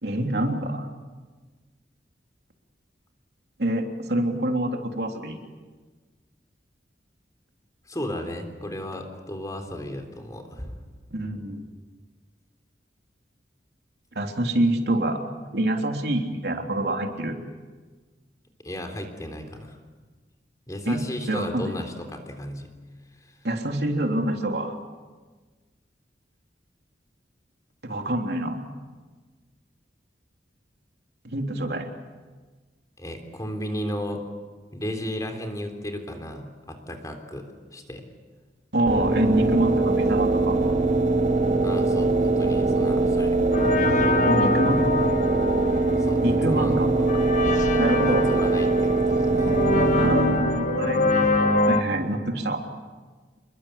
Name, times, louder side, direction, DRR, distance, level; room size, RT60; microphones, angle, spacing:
voice 1, 0.0-0.9 3.6-5.4 11.1-11.6 14.1-15.3 15.5-17.4 20.8-21.7 23.4-24.8 27.8-28.6 31.2-31.9 38.7-40.6 44.3-44.8 46.2-46.9 47.8-48.2 49.9-51.1 51.7-52.6, right 1 dB, 65° right, 3 dB, 3.3 m, -26 dB
voice 2, 7.9-10.8 18.6-19.8 20.7-22.7 33.0-34.2 34.7-38.0 41.6-43.4 46.0-46.7 47.9-49.6, equal, 20° left, 5 dB, 3.6 m, -34 dB
sound 1, 38.9-50.6, right 3 dB, 45° right, 3.5 m, -22 dB
sound 2, 43.5-51.8, left 2 dB, 45° left, 1.9 m, -25 dB
29.5 x 22.0 x 8.4 m, 1.3 s
head